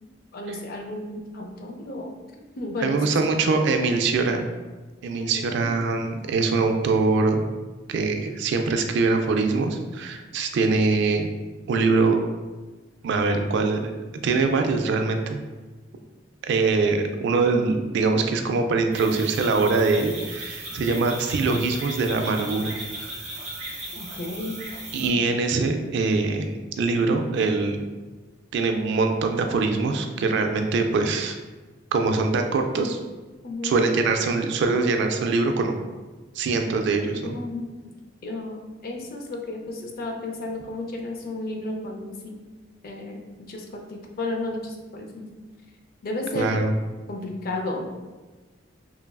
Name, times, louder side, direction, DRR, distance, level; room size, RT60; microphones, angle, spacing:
voice 1, 0.0-2.1 2.5-3.3 5.2-5.7 20.8-21.0 23.9-24.6 33.4-33.8 37.2-37.9 38.2-42.3 42.8-43.2 43.5-45.3 46.0-46.6 47.1-47.9, left 2 dB, 50° left, 1 dB, 0.4 m, -33 dB
voice 2, 2.8-4.5 5.0-7.5 7.9-11.3 11.7-12.2 13.0-14.0 14.2-15.4 16.5-23.1 24.9-27.8 28.5-31.4 31.9-33.0 33.6-35.8 36.4-37.4 46.3-46.7, right 3 dB, 65° right, 6 dB, 0.3 m, -23 dB
sound 1, 18.9-25.1, right 1 dB, 40° right, 0.7 m, -36 dB
3.1 x 2.3 x 2.2 m, 1.2 s
head